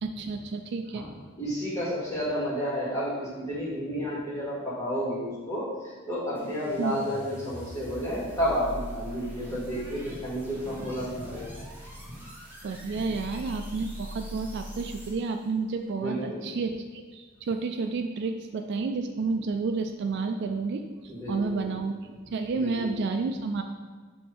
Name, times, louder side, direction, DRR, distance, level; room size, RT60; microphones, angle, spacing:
voice 1, 0.0-1.1 6.8-6.9 12.6-22.0 22.3-23.6, right 4 dB, 50° right, 6 dB, 0.3 m, -30 dB
voice 2, 0.9-11.6 16.0-16.4 21.0-21.7 22.6-23.0, equal, 15° left, -8 dB, 1.8 m, -31 dB
sound 1, 6.3-15.4, equal, 10° right, 1.1 m, -42 dB
7.1 x 3.0 x 4.6 m, 1.5 s
head